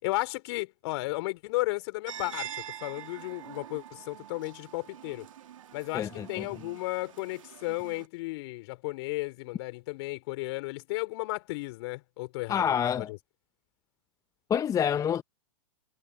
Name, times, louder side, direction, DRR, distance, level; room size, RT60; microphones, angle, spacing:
voice 1, 0.0-5.3 5.7-13.2, left 22 dB, 50° left, 4.2 m, -34 dB
sound 1, 2.1-8.1, right 10 dB, 70° right, 2.8 m, -45 dB
voice 2, 5.9-6.4 12.5-13.1 14.5-15.2, left 8 dB, 20° left, 0.9 m, -27 dB
hypercardioid pair, 110°, 17 cm